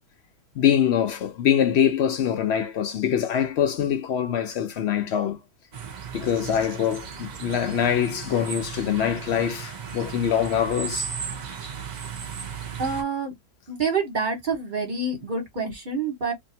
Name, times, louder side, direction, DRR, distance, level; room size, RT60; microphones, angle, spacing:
voice 1, 0.6-5.4 6.1-11.1, left 9 dB, 70° left, 0.6 m, -24 dB
sound 1, 5.7-13.0, right 6 dB, 55° right, 0.4 m, -35 dB
voice 2, 12.8-13.3 13.7-16.3, right 4 dB, 35° right, 1.2 m, -27 dB
2.7 x 2.6 x 2.7 m
omnidirectional pair, 1.6 m